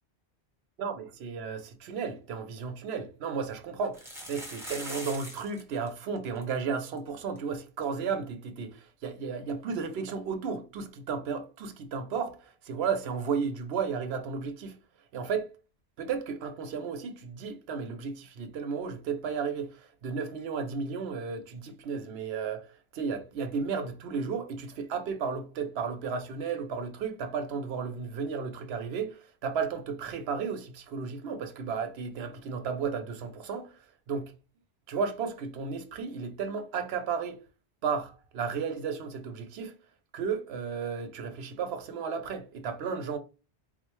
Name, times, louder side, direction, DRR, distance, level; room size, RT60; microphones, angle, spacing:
voice 1, 0.8-14.8 15.1-15.5 16.0-34.3 34.9-37.4 37.8-39.7 40.1-43.2, right 5 dB, 70° right, 0.8 m, -34 dB
sound 1, 2.2-2.3 2.6-2.7 3.8-5.6 5.9-6.0 6.2-6.4 7.0-7.1 7.4-7.5 9.5-9.6, equal, 5° right, 0.9 m, -41 dB
3.9 x 2.1 x 3.0 m
omnidirectional pair, 1.1 m